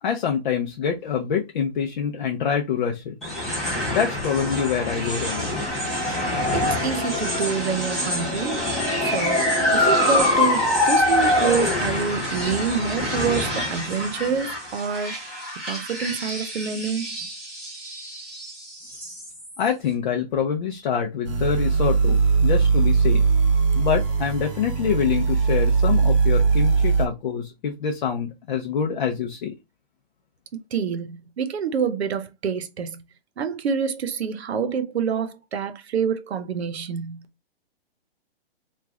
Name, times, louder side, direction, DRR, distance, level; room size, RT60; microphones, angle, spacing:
voice 1, 0.0-3.1 3.9-5.5 19.6-23.2 23.7-29.5, left 7 dB, 50° left, 0.6 m, -25 dB
sound 1, 3.2-19.7, left 1 dB, ahead, 0.4 m, -25 dB
voice 2, 6.5-8.6 9.0-15.1 15.6-17.3 30.7-33.0 33.4-37.2, right 6 dB, 85° right, 0.8 m, -27 dB
sound 2, 21.2-27.1, right 5 dB, 30° right, 0.7 m, -20 dB
3.2 x 2.4 x 3.5 m
hypercardioid pair, 165°, 31 cm